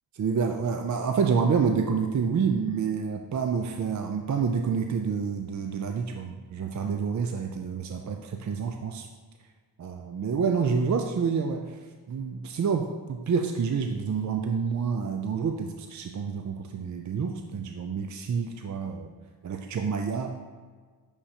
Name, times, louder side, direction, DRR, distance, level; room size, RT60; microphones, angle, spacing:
voice 1, 0.2-9.1 9.8-11.8 12.1-19.1 19.4-20.4, right 6 dB, 45° right, 4 dB, 0.4 m, -28 dB
6.5 x 5.6 x 2.8 m, 1.5 s
wide cardioid pair, 115°, 42 cm